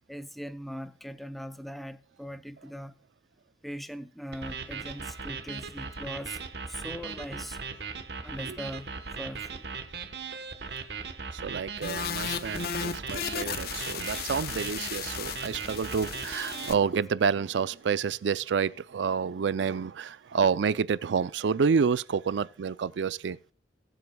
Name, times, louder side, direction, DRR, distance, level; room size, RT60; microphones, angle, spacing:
voice 1, 0.1-2.9 3.6-6.4 6.7-7.6 8.2-8.9 9.2-9.7, equal, ahead, 0.5 m, -40 dB
sound 1, 4.3-16.7, right 5 dB, 65° right, 1.1 m, -38 dB
voice 2, 11.3-23.4, right 6 dB, 85° right, 0.4 m, -29 dB
sound 2, 11.8-16.7, left 7 dB, 60° left, 0.6 m, -35 dB
20.5 x 7.8 x 2.3 m
head